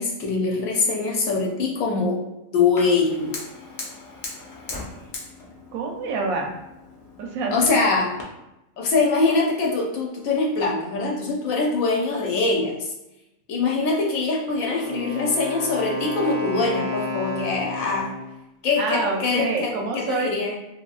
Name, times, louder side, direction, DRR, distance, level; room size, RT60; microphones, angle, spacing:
voice 1, 0.0-2.2 2.5-3.4 7.5-8.1 8.8-12.9 13.5-18.1 18.6-20.6, left 3 dB, 85° left, -1 dB, 1.0 m, -23 dB
Fire, 2.8-8.2, left 3 dB, 60° left, 0.7 m, -39 dB
voice 2, 5.7-6.5 7.2-7.6 18.8-20.3, right 4 dB, 85° right, 2 dB, 1.0 m, -26 dB
Wind instrument woodwind instrument, 14.5-18.3, left 3 dB, 65° right, 0.7 m, -32 dB
2.8 x 2.6 x 2.3 m, 0.93 s
omnidirectional pair, 1.4 m